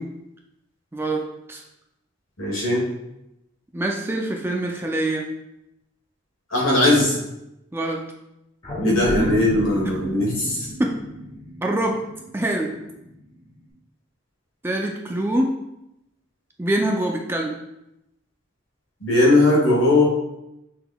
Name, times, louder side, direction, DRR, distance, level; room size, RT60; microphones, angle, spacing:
voice 1, 0.9-1.6 3.7-5.3 7.7-8.1 9.8-10.0 10.8-11.0 11.6-12.0 12.3-12.8 14.6-15.6 16.6-17.6, right 1 dB, 10° right, 1 dB, 0.3 m, -25 dB
voice 2, 2.4-2.8 6.5-7.2 8.8-10.7 19.0-20.0, left 2 dB, 80° left, -2 dB, 1.3 m, -19 dB
sound 1, 8.6-13.1 13.6-13.7, equal, 20° left, 1.5 m, -30 dB
5.9 x 3.7 x 2.3 m, 0.88 s
head